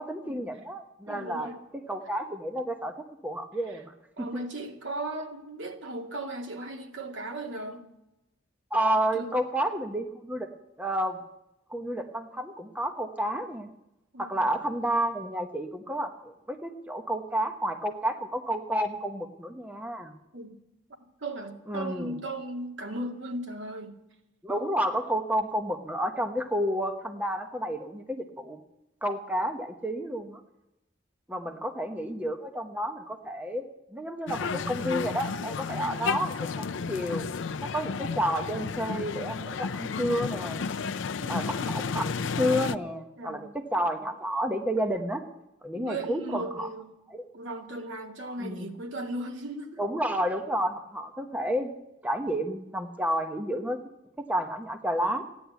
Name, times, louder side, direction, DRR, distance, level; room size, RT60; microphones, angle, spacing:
voice 1, 0.0-1.5 1.9-3.9 8.7-10.5 10.8-11.2 11.7-13.7 14.2-20.1 21.7-22.1 24.4-28.6 29.0-30.4 31.3-33.7 33.9-37.3 37.6-40.6 41.3-45.2 45.6-46.7 47.1-47.2 48.4-48.7 49.8-51.7 52.0-53.8 54.3-55.2, equal, 10° right, 1.0 m, -30 dB
voice 2, 1.1-1.6 4.2-7.9 9.1-9.3 14.1-14.5 20.3-20.5 21.2-23.9 31.4-31.5 35.8-36.0 37.9-38.1 41.2-41.4 43.2-43.5 45.7-46.9 47.3-49.8, right 1 dB, 80° right, 2.2 m, -37 dB
sound 1, 34.3-42.8, left 5 dB, 90° left, 0.5 m, -32 dB
15.5 x 10.5 x 8.2 m
head